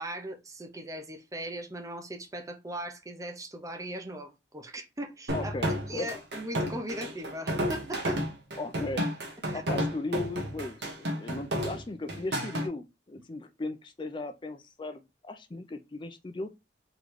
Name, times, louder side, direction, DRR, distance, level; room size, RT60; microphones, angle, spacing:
voice 1, 0.0-5.5 5.9-8.2 9.5-9.6, right 1 dB, 20° right, 0.6 m, -39 dB
voice 2, 5.3-6.2 8.6-9.1 9.5-16.5, left 2 dB, 25° left, 0.4 m, -37 dB
sound 1, 5.3-12.7, equal, 65° right, 1.2 m, -31 dB
3.8 x 3.1 x 3.1 m
head